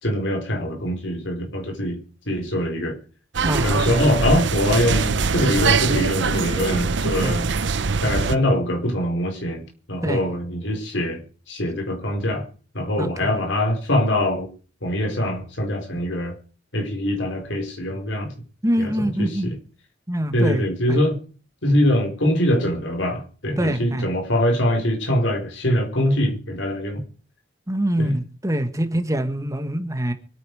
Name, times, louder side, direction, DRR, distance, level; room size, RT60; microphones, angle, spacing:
voice 1, 0.0-2.0 2.3-3.0 3.6-7.4 8.0-11.2 11.5-12.4 12.7-14.5 14.8-16.3 16.7-18.3 18.8-19.5 20.3-21.2 21.6-27.0 28.0-28.2, left 1 dB, 75° left, 4.6 m, -23 dB
sound 1, 3.3-8.4, right 4 dB, 65° right, 0.8 m, -22 dB
voice 2, 3.4-4.0 7.2-7.4 10.0-10.2 13.0-13.3 18.6-19.5 20.1-20.6 20.9-21.0 21.7-21.8 23.6-24.1 27.7-30.1, right 1 dB, 15° right, 1.6 m, -24 dB
24.0 x 9.4 x 4.8 m
head